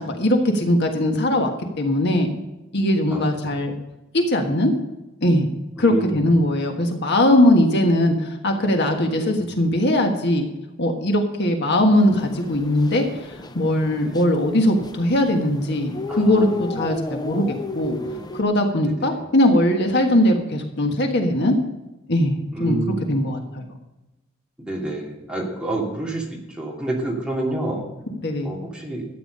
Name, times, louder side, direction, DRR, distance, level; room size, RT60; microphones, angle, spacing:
voice 1, 0.0-1.5 1.8-2.3 2.7-3.7 4.1-4.7 5.2-5.5 5.8-10.5 10.8-13.0 13.5-18.0 18.3-21.6 22.1-22.8 23.1-23.6 28.2-28.5, left 1 dB, 55° left, 3 dB, 1.5 m, -20 dB
voice 2, 5.8-6.2 9.1-9.5 14.0-14.2 16.1-16.5 19.0-19.2 22.5-23.2 24.7-27.8 28.4-29.1, right 2 dB, 5° right, -3 dB, 2.9 m, -29 dB
sound 1, 11.9-18.4, left 2 dB, 20° left, 0.7 m, -33 dB
13.0 x 9.3 x 5.5 m, 0.99 s
head